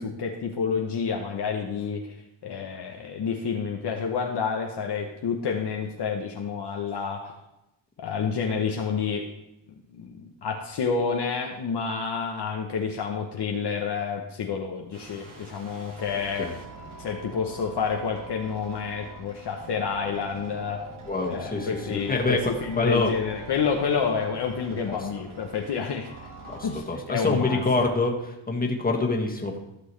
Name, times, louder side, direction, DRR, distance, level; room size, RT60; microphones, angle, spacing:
voice 1, 0.0-2.2 2.4-7.3 8.0-9.3 9.9-16.5 17.0-20.9 21.3-26.1 26.6-27.6, left 6 dB, 55° left, 2 dB, 1.0 m, -29 dB
sound 1, 14.9-26.8, right 2 dB, 75° right, 1.9 m, -44 dB
voice 2, 21.1-23.1 24.8-25.0 26.5-29.6, left 3 dB, 15° left, 0 dB, 1.7 m, -26 dB
14.5 x 6.2 x 3.2 m, 0.88 s
cardioid pair, 100°, 50 cm